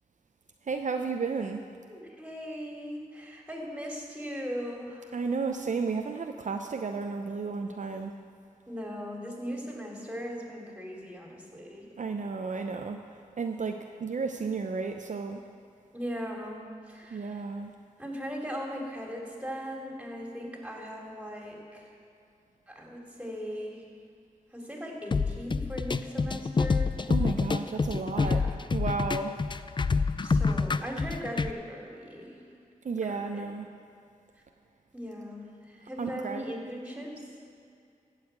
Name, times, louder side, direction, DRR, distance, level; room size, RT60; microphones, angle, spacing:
voice 1, 0.7-1.6 5.1-8.1 12.0-13.0 13.4-13.7 14.0-15.4 17.1-17.7 27.1-28.4 28.7-29.3 32.8-33.7 36.0-36.4, right 4 dB, 60° right, 4 dB, 0.6 m, -32 dB
voice 2, 1.9-5.1 8.7-11.9 15.9-17.4 18.0-21.9 22.7-23.9 24.5-26.9 28.2-28.5 30.2-32.4 33.0-33.5 34.9-37.1, equal, 10° right, -1 dB, 2.9 m, -39 dB
sound 1, 25.1-31.5, left 4 dB, 35° left, 0.4 m, -27 dB
14.5 x 4.9 x 8.1 m, 2.4 s
cardioid pair, 55°, 14 cm